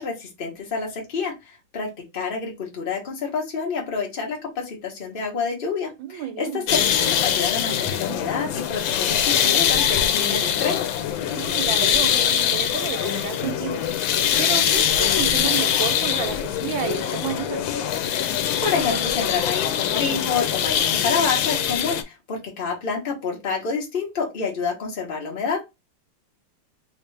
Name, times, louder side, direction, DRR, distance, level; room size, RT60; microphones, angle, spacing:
voice 1, 0.0-1.3 1.7-1.9 2.1-6.6 7.2-10.8 18.6-25.7, left 5 dB, 35° left, 1.2 m, -28 dB
voice 2, 6.0-6.7 11.2-13.9 14.4-17.7, right 10 dB, 85° right, 1.4 m, -31 dB
sound 1, 6.7-22.0, left 9 dB, 85° left, 1.3 m, -23 dB
sound 2, 7.7-8.2 8.5-8.8 9.6-10.1 10.4-10.7 11.4-11.9 12.3-12.6 13.3-13.7 14.1-14.5, right 1 dB, 45° right, 1.1 m, -36 dB
3.2 x 2.9 x 3.2 m
omnidirectional pair, 2.1 m